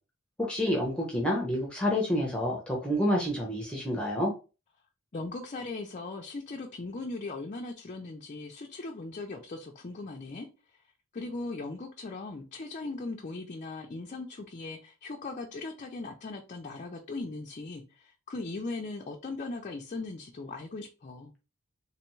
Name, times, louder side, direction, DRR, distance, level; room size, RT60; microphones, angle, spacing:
voice 1, 0.4-4.3, equal, 5° left, 0.8 m, -28 dB
voice 2, 5.1-10.5 11.1-21.3, left 3 dB, 35° left, 0.5 m, -39 dB
3.4 x 3.3 x 3.1 m
head